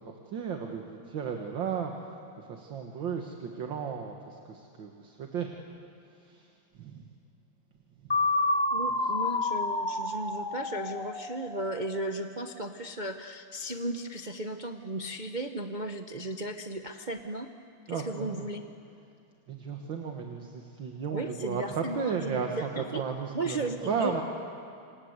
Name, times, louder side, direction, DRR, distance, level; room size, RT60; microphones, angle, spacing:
voice 1, 0.3-1.9 2.5-5.5 6.8-7.0 17.9-18.5 19.5-24.2, right 6 dB, 65° right, 2 dB, 2.2 m, -34 dB
sound 1, 8.1-12.0, left 2 dB, 25° left, 0.6 m, -29 dB
voice 2, 8.7-17.5 17.9-18.6 21.1-23.0 23.3-24.1, right 1 dB, 50° right, 5 dB, 0.5 m, -35 dB
27.5 x 26.0 x 8.1 m, 2.4 s
omnidirectional pair, 2.3 m